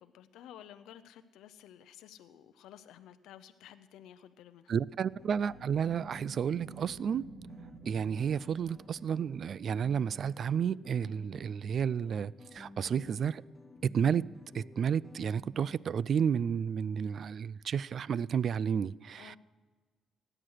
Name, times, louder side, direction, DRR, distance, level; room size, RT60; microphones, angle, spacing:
voice 1, 0.0-4.7 19.2-19.4, left 10 dB, 90° left, 0.6 m, -53 dB
voice 2, 4.7-7.3 7.9-13.4 13.8-19.4, right 7 dB, 55° right, 0.3 m, -31 dB
sound 1, 5.0-9.4, right 5 dB, 90° right, 2.3 m, -51 dB
sound 2, 5.2-15.8, left 2 dB, 15° left, 1.5 m, -54 dB
16.5 x 9.9 x 6.4 m
cardioid pair, 90°, 0 cm